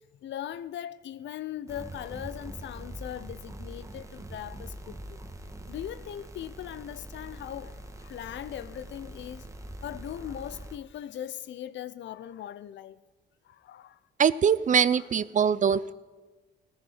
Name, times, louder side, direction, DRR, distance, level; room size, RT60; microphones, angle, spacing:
voice 1, 0.2-5.2 5.7-9.4 9.8-13.0 13.5-14.0 14.9-15.0, left 11 dB, 65° left, 0.6 m, -39 dB
sound 1, 1.7-10.8, right 1 dB, 15° right, 1.4 m, -43 dB
voice 2, 14.2-15.9, right 7 dB, 40° right, 0.5 m, -23 dB
17.5 x 14.0 x 5.6 m
cardioid pair, 90°, 20 cm